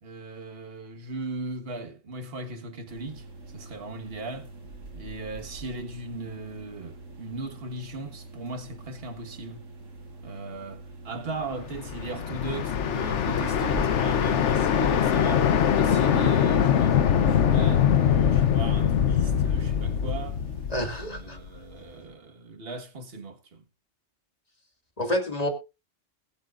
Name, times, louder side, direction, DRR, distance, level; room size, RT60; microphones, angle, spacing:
voice 1, 0.0-4.5 4.9-9.6 10.2-20.4 21.0-23.6, right 2 dB, 50° right, 1.7 m, -38 dB
sound 1, 2.9-20.8, right 2 dB, 80° right, 2.1 m, -44 dB
sound 2, 11.6-21.6, left 8 dB, 65° left, 1.1 m, -23 dB
voice 2, 20.7-21.4 25.0-25.5, left 1 dB, 30° left, 2.1 m, -28 dB
20.5 x 7.9 x 2.5 m
omnidirectional pair, 1.3 m